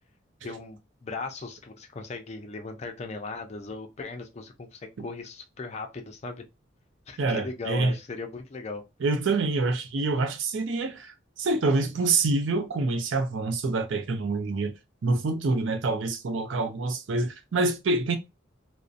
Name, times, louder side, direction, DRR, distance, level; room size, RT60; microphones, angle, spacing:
voice 1, 0.4-6.4 7.1-8.8, left 3 dB, 35° left, 0.4 m, -38 dB
voice 2, 7.2-7.9 9.0-14.7 15.0-18.2, right 3 dB, 75° right, 0.5 m, -26 dB
2.6 x 2.0 x 2.4 m
head